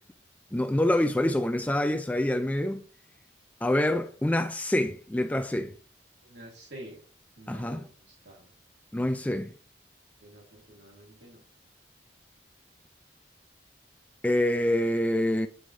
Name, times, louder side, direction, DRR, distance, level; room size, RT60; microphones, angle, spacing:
voice 1, 0.5-2.8 3.6-5.7 7.5-7.8 8.9-9.5 14.2-15.5, left 1 dB, 10° left, 0.3 m, -26 dB
voice 2, 6.2-7.0 7.4-8.5 10.2-11.4, right 1 dB, 70° right, 2.6 m, -48 dB
9.2 x 4.0 x 3.2 m
head